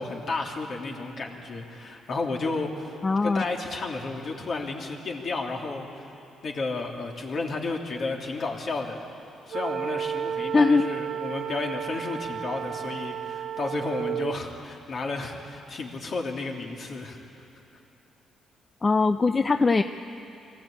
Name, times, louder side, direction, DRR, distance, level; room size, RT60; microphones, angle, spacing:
voice 1, 0.0-6.1 6.4-9.0 9.5-17.2, left 3 dB, 50° left, 0 dB, 2.9 m, -32 dB
voice 2, 3.0-3.4 10.5-10.8 18.8-19.8, left 4 dB, 30° left, 9 dB, 0.6 m, -21 dB
sound 1, 9.5-14.4, right 8 dB, 60° right, 0.4 m, -32 dB
24.0 x 15.5 x 8.7 m, 2.8 s
cardioid pair, 90°, 0 cm